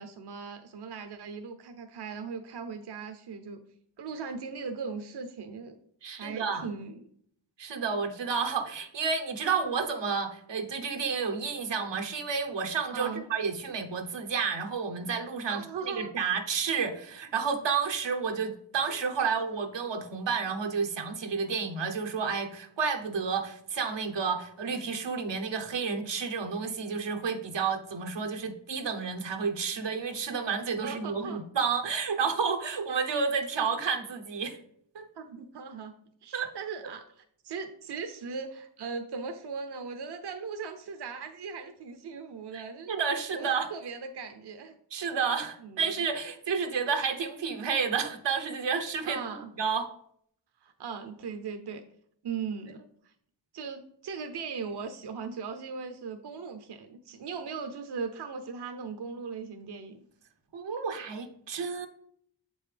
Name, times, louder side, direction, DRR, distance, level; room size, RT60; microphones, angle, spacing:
voice 1, 0.0-3.6 4.0-5.7 6.1-7.0 12.9-13.2 15.5-16.1 18.9-19.0 30.8-31.4 35.1-35.9 36.2-44.8 45.6-45.9 49.0-49.5 50.6-51.8 52.2-53.1 53.5-60.0, right 5 dB, 70° right, 8 dB, 0.7 m, -39 dB
voice 2, 6.0-6.7 7.6-34.6 34.9-35.0 36.3-36.5 42.5-43.7 44.9-49.2 49.6-49.9 60.5-61.9, right 5 dB, 90° right, 5 dB, 0.9 m, -31 dB
7.3 x 5.4 x 3.3 m, 0.66 s
wide cardioid pair, 75°, 42 cm